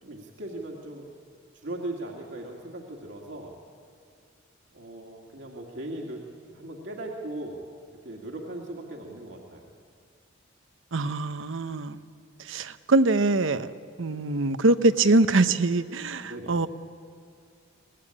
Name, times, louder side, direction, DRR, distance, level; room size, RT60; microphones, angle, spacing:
voice 1, 0.0-1.1 1.5-3.6 4.7-7.7 8.0-9.7 16.3-16.6, right 1 dB, 65° right, 0 dB, 2.1 m, -38 dB
voice 2, 10.9-12.0 12.4-13.7 14.0-16.7, right 2 dB, 85° right, 11 dB, 0.9 m, -23 dB
24.0 x 18.0 x 10.0 m, 2.3 s
head